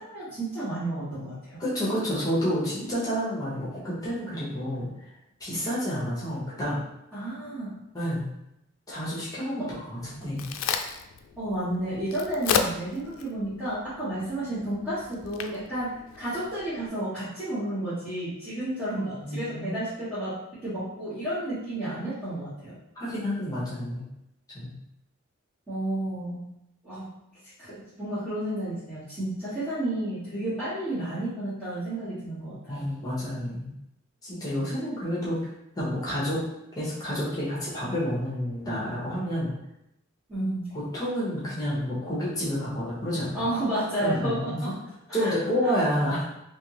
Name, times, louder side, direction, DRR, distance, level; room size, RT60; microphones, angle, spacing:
voice 1, 0.0-1.6 7.1-7.8 9.6-9.7 11.3-22.8 25.7-26.4 26.8-27.1 27.6-32.8 40.3-40.7 43.3-44.7 45.1-45.3 45.6-45.7, right 1 dB, 5° right, -17 dB, 1.4 m, -31 dB
voice 2, 1.6-4.9 5.4-6.8 7.9-8.3 8.9-10.5 19.2-19.8 22.9-24.0 24.5-24.7 32.7-33.7 34.2-35.4 35.7-36.4 36.7-39.5 40.9-43.6 44.0-44.7 45.1-46.3, equal, 15° left, -8 dB, 1.0 m, -29 dB
Crack, 10.0-16.9, left 6 dB, 75° left, 0.3 m, -34 dB
3.4 x 2.9 x 3.0 m, 0.85 s
head